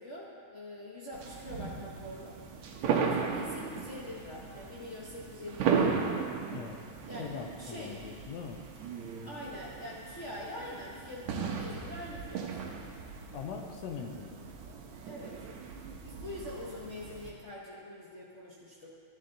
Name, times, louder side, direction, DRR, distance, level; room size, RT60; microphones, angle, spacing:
voice 1, 0.0-2.4 3.0-6.0 7.0-8.0 9.2-12.5 15.0-15.4 16.0-18.9, left 1 dB, 45° left, -6 dB, 0.9 m, -44 dB
sound 1, 1.1-17.3, right 6 dB, 75° right, 2.2 m, -36 dB
voice 2, 6.5-6.8 7.2-8.6 13.3-14.4, left 6 dB, 70° left, 3 dB, 1.9 m, -41 dB
13.0 x 11.0 x 4.0 m, 2.2 s
omnidirectional pair, 3.3 m